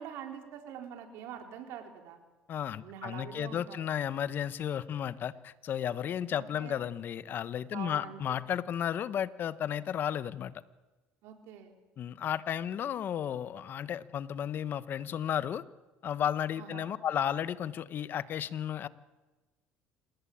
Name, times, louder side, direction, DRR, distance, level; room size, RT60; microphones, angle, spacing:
voice 1, 0.0-2.2 2.8-3.9 6.3-6.8 7.7-8.4 11.2-11.7 16.6-16.9, right 8 dB, 75° right, 4 dB, 4.3 m, -45 dB
voice 2, 2.5-10.5 12.0-15.6 16.0-18.9, left 9 dB, 50° left, 15 dB, 1.1 m, -33 dB
27.0 x 19.0 x 8.8 m, 1.2 s
supercardioid pair, 100°, 5 cm